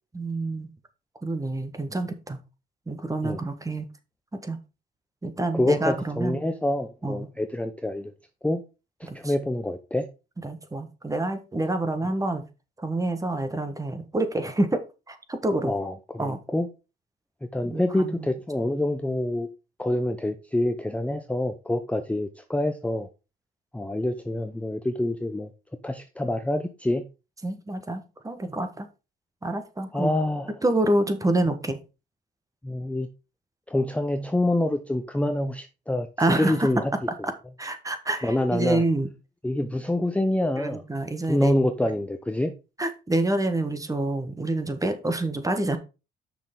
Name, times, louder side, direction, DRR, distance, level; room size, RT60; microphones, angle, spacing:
voice 1, 0.1-0.7 1.2-2.4 2.9-3.9 4.4-4.6 5.2-6.4 7.0-7.3 9.1-9.3 10.4-12.4 12.8-14.8 15.1-15.7 16.2-16.4 17.6-18.3 27.4-28.9 29.4-30.1 30.6-31.8 36.2-36.7 37.2-37.3 37.6-39.1 40.6-41.5 42.8-45.8, right 2 dB, 15° right, 1.2 m, -27 dB
voice 2, 5.5-8.1 8.4-8.6 9.0-10.1 15.6-16.7 17.5-19.5 19.8-23.1 23.7-25.5 25.8-27.0 29.9-30.5 32.6-33.1 33.7-36.9 38.2-38.8 39.4-40.8 41.3-42.5, left 1 dB, 5° left, 0.6 m, -26 dB
6.7 x 6.1 x 3.7 m
cardioid pair, 90°, 20 cm